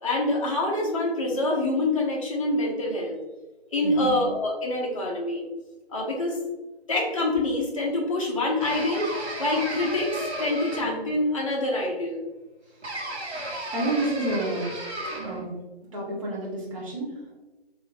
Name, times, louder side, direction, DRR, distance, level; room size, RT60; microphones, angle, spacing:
voice 1, 0.0-3.2 3.7-5.5 5.9-6.4 6.9-12.2, left 2 dB, 30° left, -1 dB, 0.8 m, -26 dB
sound 1, 8.6-11.2 12.8-15.5, right 1 dB, 85° right, 1.0 m, -34 dB
voice 2, 13.7-14.7 15.2-15.5 15.9-17.3, right 1 dB, 30° right, -5 dB, 1.2 m, -30 dB
3.8 x 3.1 x 2.7 m, 1.1 s
figure-of-eight pair, 150°, 32 cm